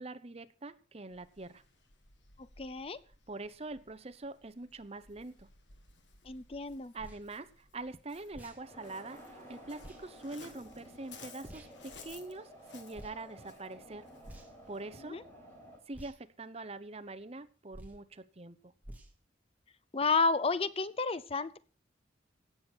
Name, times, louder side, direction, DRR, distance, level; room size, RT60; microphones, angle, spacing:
voice 1, 0.0-1.6 3.3-5.5 6.9-14.1 14.7-15.2 15.9-18.7, right 2 dB, 30° right, 12 dB, 0.8 m, -44 dB
Waves surf, 1.1-15.0, left 4 dB, 65° left, 1.8 m, -58 dB
voice 2, 2.6-3.0 6.2-6.9 15.1-15.2 19.9-21.6, left 4 dB, 30° left, 14 dB, 0.5 m, -31 dB
sound 1, 7.0-7.2 8.3-8.6 9.8-10.0 11.5-11.7 12.9-13.2 14.2-14.7 15.9-16.2 17.7-18.0 18.8-19.1, right 1 dB, 10° right, 2.0 m, -49 dB
sound 2, 8.5-15.8, equal, 10° left, 5.3 m, -54 dB
17.0 x 7.1 x 6.1 m, 0.39 s
head